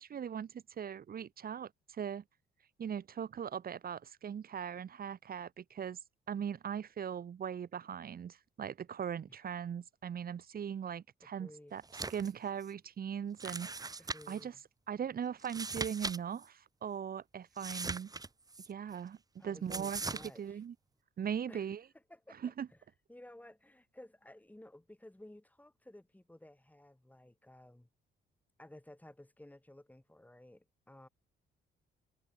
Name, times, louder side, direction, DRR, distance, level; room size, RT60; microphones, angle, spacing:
voice 1, 0.0-2.2 2.8-6.0 6.3-11.8 12.1-14.0 14.3-14.5 14.9-18.1 18.7-19.2 19.4-20.0 20.4-20.7 21.2-21.8 22.4-22.7, right 8 dB, 50° right, 1.4 m, -39 dB
voice 2, 11.2-11.8 14.0-14.6 19.4-20.6 21.5-21.7 22.1-22.8 23.1-27.9 28.6-31.1, left 1 dB, 10° left, 7.9 m, -55 dB
sound 1, 11.8-12.3 12.6-12.7 13.4-14.4 15.4-16.2 16.4-16.5 17.6-18.7 19.7-20.3, right 3 dB, 20° right, 0.9 m, -40 dB
cardioid pair, 90°, 20 cm